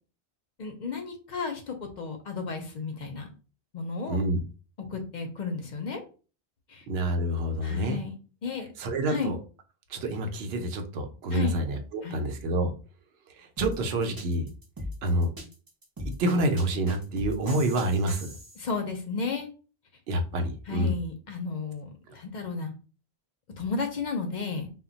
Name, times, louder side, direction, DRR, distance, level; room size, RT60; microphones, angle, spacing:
voice 1, 0.6-3.3 3.7-4.2 4.9-6.0 6.7-6.8 7.6-8.2 8.4-8.7 9.1-9.3 11.3-11.6 12.0-12.2 18.6-19.5 20.7-22.7 23.6-24.7, left 4 dB, 55° left, 5 dB, 0.6 m, -33 dB
voice 2, 4.1-4.4 6.9-8.0 8.8-9.3 9.9-12.7 13.4-14.5 15.0-15.3 16.0-18.3 20.1-20.9, right 1 dB, 75° right, 6 dB, 0.8 m, -27 dB
sound 1, 13.6-18.6, left 1 dB, 25° right, 0.5 m, -39 dB
2.2 x 2.1 x 3.8 m, 0.36 s
omnidirectional pair, 1.1 m